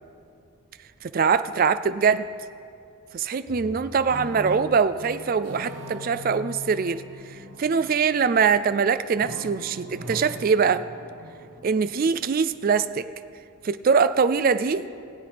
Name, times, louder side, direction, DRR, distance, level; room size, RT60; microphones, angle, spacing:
voice 1, 1.0-2.3 3.1-7.0 7.6-10.8 11.6-13.1 13.6-14.8, right 5 dB, 40° right, 12 dB, 0.3 m, -22 dB
sound 1, 3.5-8.7 9.1-12.2, equal, 65° right, 1.3 m, -41 dB
20.5 x 8.2 x 3.4 m, 2.5 s
head